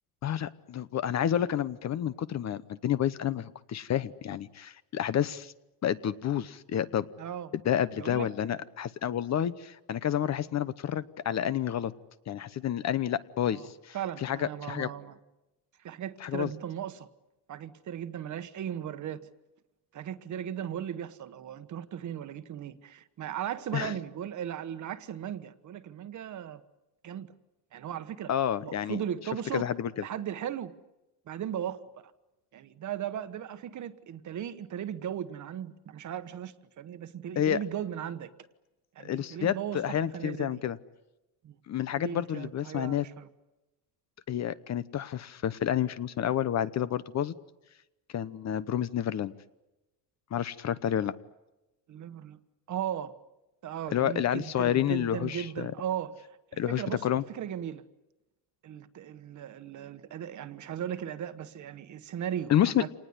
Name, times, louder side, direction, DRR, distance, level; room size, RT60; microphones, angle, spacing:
voice 1, 0.2-5.5 5.8-7.1 7.6-11.9 12.3-14.0 14.2-14.9 16.2-16.5 23.7-23.9 28.3-29.0 29.5-29.9 37.4-37.6 39.0-40.8 41.7-43.0 44.3-47.3 48.1-49.3 50.3-51.1 53.9-55.7 56.6-57.2 62.5-62.8, left 10 dB, 40° left, 15 dB, 0.9 m, -29 dB
voice 2, 7.2-7.5 8.0-8.3 13.4-13.7 13.9-15.2 15.8-17.1 17.5-19.2 19.9-26.6 27.0-27.3 27.7-28.3 28.6-29.7 30.0-30.7 31.3-32.1 32.5-38.3 38.9-40.6 41.4-41.6 41.9-43.3 51.9-52.4 52.7-53.2 53.6-56.2 56.5-57.8 58.6-62.9, right 10 dB, 45° right, 12 dB, 1.3 m, -37 dB
27.0 x 19.5 x 9.7 m, 1.0 s
cardioid pair, 145°, 40 cm